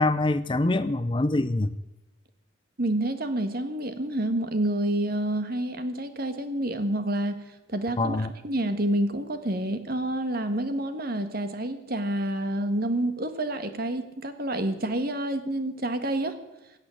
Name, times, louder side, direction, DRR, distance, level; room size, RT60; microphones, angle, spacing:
voice 1, 0.0-1.7 8.0-8.3, left 2 dB, 25° left, 14 dB, 0.5 m, -24 dB
voice 2, 2.8-7.4 7.7-16.3, right 1 dB, 50° right, 9 dB, 1.6 m, -28 dB
16.5 x 8.4 x 9.9 m, 0.97 s
head